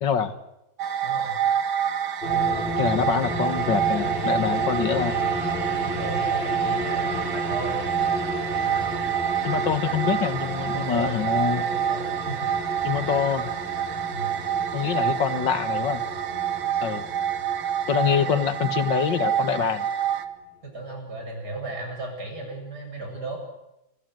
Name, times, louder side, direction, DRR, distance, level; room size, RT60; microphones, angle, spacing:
voice 1, 0.0-0.3 2.8-5.2 9.4-11.7 12.8-13.5 14.7-16.0 16.8-17.1 17.9-19.9, left 8 dB, 65° left, 11 dB, 2.3 m, -25 dB
sound 1, 0.8-20.2, right 9 dB, 75° right, 2.2 m, -27 dB
voice 2, 1.0-1.4 5.7-7.8 10.7-12.5 14.1-14.4 18.0-18.3 20.6-23.4, right 2 dB, 50° right, 3 dB, 8.5 m, -36 dB
sound 2, 2.2-19.9, equal, 30° left, 7.2 m, -33 dB
29.0 x 24.5 x 7.9 m, 0.90 s
omnidirectional pair, 2.2 m